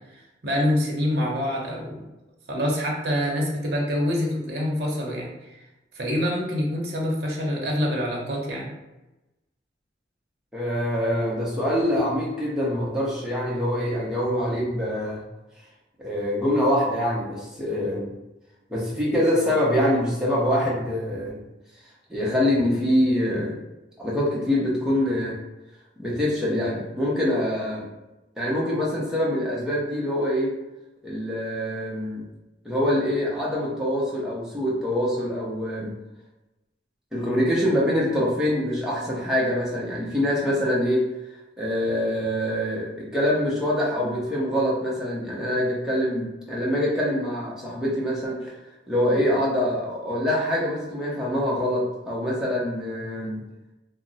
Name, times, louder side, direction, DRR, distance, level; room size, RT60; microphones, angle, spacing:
voice 1, 0.4-2.0 2.5-5.6 5.9-8.7, equal, 60° right, -2 dB, 0.7 m, -26 dB
voice 2, 10.5-15.2 16.0-18.1 18.7-21.4 22.1-23.6 24.0-25.4 26.0-27.9 28.4-30.5 31.0-32.2 32.6-35.9 37.1-41.0 41.6-48.6 48.9-53.4, equal, 5° right, -6 dB, 0.6 m, -24 dB
2.5 x 2.0 x 3.8 m, 1.0 s
head